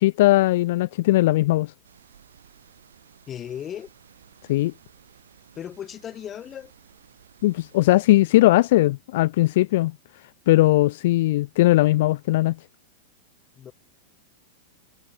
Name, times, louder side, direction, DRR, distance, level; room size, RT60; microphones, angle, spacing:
voice 1, 0.0-1.7 4.5-4.7 7.4-9.9 10.5-12.6, left 17 dB, 65° left, 0.7 m, -19 dB
sound 1, 1.8-8.2, right 8 dB, 80° right, 6.6 m, -55 dB
voice 2, 3.3-3.9 5.5-6.7 13.5-13.7, left 9 dB, 30° left, 2.1 m, -36 dB
hypercardioid pair, 105°, 0 cm